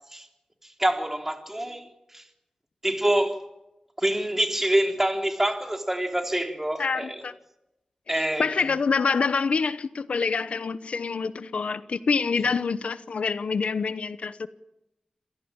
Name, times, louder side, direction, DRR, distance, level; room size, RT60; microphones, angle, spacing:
voice 1, 0.6-2.3 2.8-3.4 4.0-7.2 8.1-8.7, right 1 dB, 15° right, 3.7 m, -26 dB
voice 2, 6.8-7.3 8.1-14.5, left 5 dB, 80° left, 0.9 m, -26 dB
27.5 x 17.0 x 8.9 m
wide cardioid pair, 75°, 2 cm